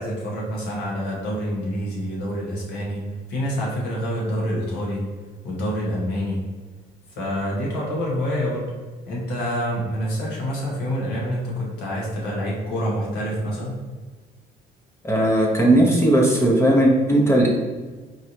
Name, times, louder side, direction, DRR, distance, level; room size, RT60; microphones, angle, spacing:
voice 1, 0.0-3.0 3.3-5.1 5.4-6.4 7.1-8.7 9.1-13.8, equal, 85° left, -4 dB, 1.4 m, -27 dB
voice 2, 15.0-17.5, right 1 dB, 15° left, -2 dB, 0.7 m, -17 dB
4.6 x 3.2 x 2.8 m, 1.4 s
cardioid pair, 110°, 17 cm